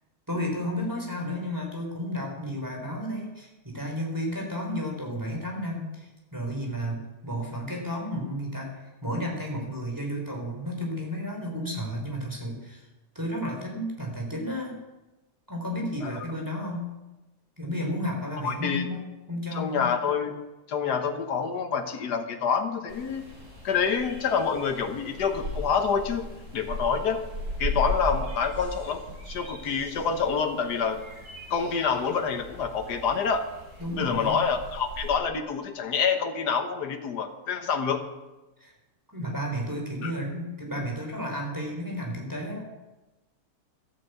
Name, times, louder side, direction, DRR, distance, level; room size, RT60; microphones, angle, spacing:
voice 1, 0.3-12.8 13.2-14.8 15.5-16.8 17.6-19.0 19.3-19.8 33.8-34.4 38.6-38.7 39.1-42.7, equal, 10° right, 0 dB, 3.7 m, -32 dB
voice 2, 18.4-18.9 19.5-20.3 20.7-23.2 23.6-26.3 26.5-27.2 27.6-29.0 29.3-31.0 31.5-33.5 33.9-38.0 40.0-40.1, left 6 dB, 80° left, 6 dB, 1.8 m, -27 dB
sound 1, 22.9-35.1, left 1 dB, 50° right, 4.1 m, -37 dB
13.5 x 9.4 x 8.0 m, 1.0 s
omnidirectional pair, 1.7 m